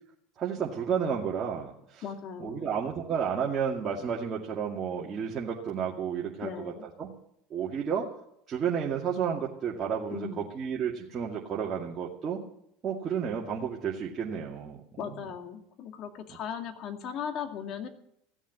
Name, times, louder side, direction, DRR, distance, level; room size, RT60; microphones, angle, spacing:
voice 1, 0.4-2.0 2.4-7.1 7.5-8.1 8.5-12.4 12.8-15.2, right 7 dB, 35° right, -4 dB, 2.2 m, -32 dB
voice 2, 2.0-2.7 6.4-6.8 10.1-10.5 15.0-17.9, left 7 dB, 50° left, 6 dB, 2.2 m, -37 dB
15.5 x 7.2 x 9.4 m, 0.74 s
supercardioid pair, 100°, 0 cm